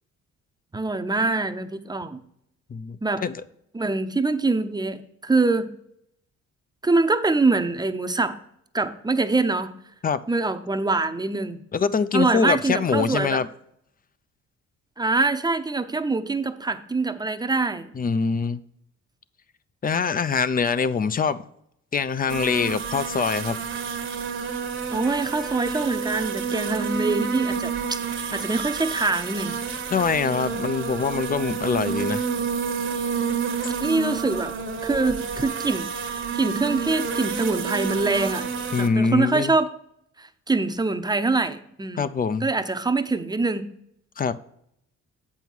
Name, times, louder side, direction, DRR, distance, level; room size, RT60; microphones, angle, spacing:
voice 1, 0.7-2.2 3.0-3.2 3.7-5.7 6.8-8.4 8.7-9.7 10.3-11.6 12.1-13.4 15.0-18.0 24.9-28.0 28.3-29.5 33.8-34.5 34.8-35.9 36.3-38.5 38.8-39.7 40.2-42.1 42.4-43.7, right 3 dB, 15° right, 0.7 m, -24 dB
voice 2, 2.7-3.4 10.0-10.2 11.7-13.5 17.9-18.6 19.8-21.4 21.9-23.6 24.4-24.5 29.9-32.2 38.7-39.5 42.0-42.5 44.2-44.4, left 5 dB, 30° left, 0.5 m, -24 dB
sound 1, 22.3-38.9, right 6 dB, 40° right, 1.0 m, -29 dB
8.0 x 5.5 x 4.6 m
cardioid pair, 90°, 30 cm